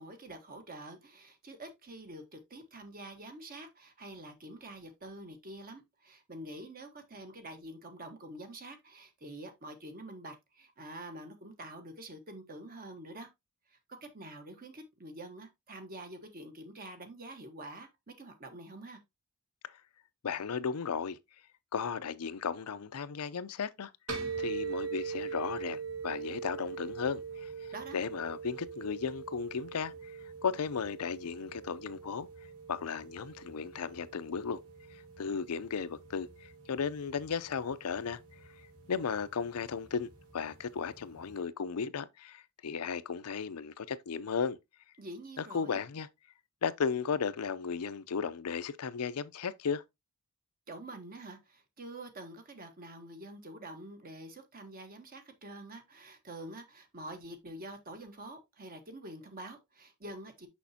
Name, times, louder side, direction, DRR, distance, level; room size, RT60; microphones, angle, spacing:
voice 1, 0.0-13.3 13.7-19.0 27.7-28.0 45.0-45.8 50.7-60.5, right 1 dB, 40° right, 1.3 m, -47 dB
voice 2, 20.2-21.2 21.7-23.9 24.4-27.5 27.9-32.3 32.7-34.6 35.2-38.2 38.9-44.6 45.4-46.1 46.6-49.8, left 6 dB, 85° left, 0.5 m, -35 dB
sound 1, 24.1-41.4, right 5 dB, 70° right, 1.7 m, -43 dB
6.3 x 5.9 x 2.8 m
head